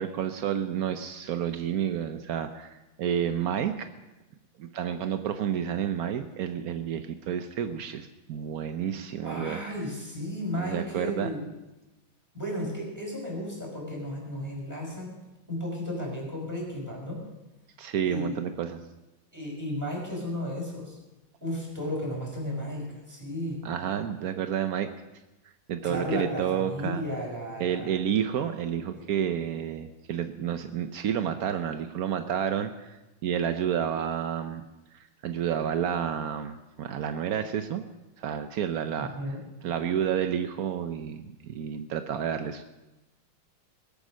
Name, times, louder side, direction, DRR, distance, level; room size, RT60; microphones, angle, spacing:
voice 1, 0.0-3.9 4.6-9.6 10.6-11.3 17.8-18.8 23.6-24.9 25.7-27.0 27.6-34.6 34.9-37.8 38.2-39.1 39.6-42.6, right 9 dB, 75° right, 8 dB, 0.8 m, -30 dB
voice 2, 9.2-11.5 12.3-15.1 15.5-17.2 18.0-18.3 19.3-21.0 21.4-23.6 25.8-28.0 28.9-29.0 39.0-39.4, equal, 10° right, -3 dB, 5.5 m, -34 dB
21.0 x 8.8 x 6.3 m, 1.0 s
omnidirectional pair, 2.4 m